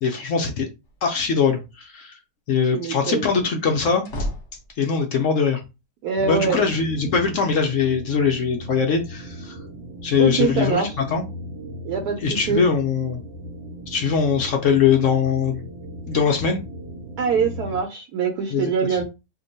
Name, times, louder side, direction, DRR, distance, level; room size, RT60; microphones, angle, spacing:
voice 1, 0.0-0.7 1.0-2.2 2.5-4.0 4.8-5.6 6.2-9.6 10.0-11.2 12.2-13.2 13.9-15.6 16.1-16.6 18.5-18.7, left 6 dB, 75° left, 0.7 m, -21 dB
sound 1, 0.8-1.4 3.6-5.1, equal, 45° left, 1.1 m, -33 dB
voice 2, 2.7-3.3 6.0-6.6 10.2-10.9 11.8-12.6 17.2-19.0, right 6 dB, 70° right, 1.0 m, -23 dB
sound 2, 6.2-17.8, equal, 85° right, 1.3 m, -37 dB
2.9 x 2.2 x 3.9 m
omnidirectional pair, 1.9 m